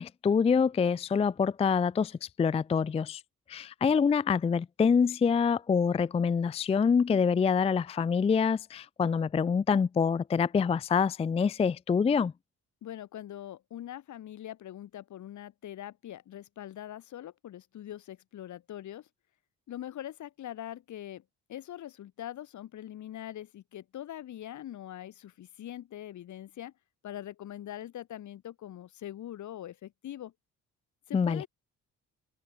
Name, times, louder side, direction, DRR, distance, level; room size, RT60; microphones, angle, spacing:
voice 1, 0.0-3.2 3.5-12.3 31.1-31.4, left 6 dB, 20° left, 0.4 m, -26 dB
voice 2, 12.8-19.1 19.7-21.2 21.5-26.7 27.0-30.3 31.1-31.5, left 12 dB, 75° left, 3.9 m, -42 dB
cardioid pair, 90°, 30 cm